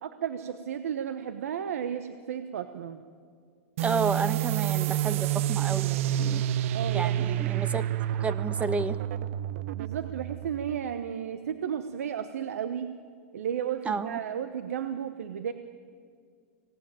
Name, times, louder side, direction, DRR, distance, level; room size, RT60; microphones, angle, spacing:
voice 1, 0.0-3.0 6.7-7.4 9.7-12.9 13.3-15.5, right 8 dB, 80° right, 9 dB, 1.1 m, -33 dB
voice 2, 3.8-6.4 6.9-7.8 8.2-9.0 13.8-14.2, right 4 dB, 15° right, 11 dB, 1.3 m, -31 dB
sound 1, 3.8-11.0, right 12 dB, 65° right, 0.6 m, -29 dB
25.0 x 18.0 x 9.0 m, 2.1 s
hypercardioid pair, 115°, 8 cm